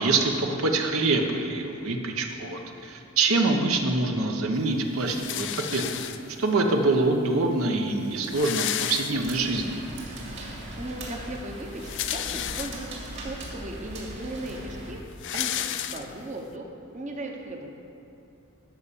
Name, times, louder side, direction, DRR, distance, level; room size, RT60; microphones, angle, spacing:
voice 1, 0.0-6.0 6.4-9.8, right 3 dB, 75° right, 3 dB, 0.9 m, -25 dB
sound 1, 5.1-6.5 7.4-7.5 7.7-7.8 8.0-9.6 10.1-10.2 11.6-13.1 13.7-13.8 14.1-16.4, left 11 dB, 55° left, 0.4 m, -32 dB
sound 2, 8.0-14.9, right 1 dB, 55° right, 2.2 m, -40 dB
voice 2, 10.8-12.9 13.1-15.0 15.3-17.7, right 1 dB, 35° right, 2 dB, 0.8 m, -37 dB
12.0 x 5.5 x 6.9 m, 2.6 s
head